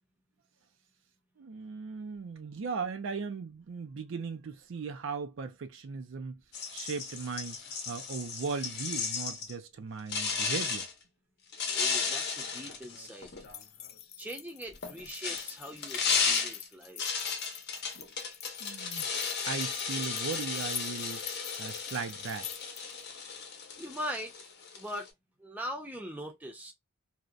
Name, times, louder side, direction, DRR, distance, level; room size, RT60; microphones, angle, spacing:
voice 1, 1.4-6.4 6.7-10.9 17.9-18.0 18.6-19.1 19.4-21.2 21.6-22.5, right 5 dB, 65° right, 0.4 m, -38 dB
sound 1, 6.5-9.5 10.1-10.9 11.5-13.6 14.7-25.1, left 5 dB, 55° left, 0.7 m, -34 dB
voice 2, 11.7-13.3 14.2-17.3 23.8-24.3 24.7-25.1 25.4-26.7, equal, 10° right, 0.6 m, -41 dB
sound 2, 13.4-23.0, left 11 dB, 35° left, 0.3 m, -45 dB
2.7 x 2.1 x 2.2 m
head